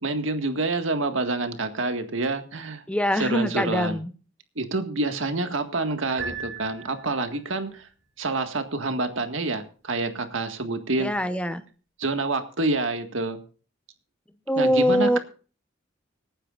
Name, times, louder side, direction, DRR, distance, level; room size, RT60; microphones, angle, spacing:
voice 1, 0.0-2.8 3.1-4.0 4.6-7.9 8.2-11.1 12.0-13.4 14.6-15.2, right 2 dB, 80° right, 6 dB, 1.8 m, -27 dB
voice 2, 2.9-4.1 11.0-11.6 14.5-15.2, equal, 5° left, 10 dB, 0.9 m, -23 dB
Piano, 6.2-7.4, right 4 dB, 60° right, 6.7 m, -36 dB
26.0 x 9.8 x 2.5 m, 0.38 s
head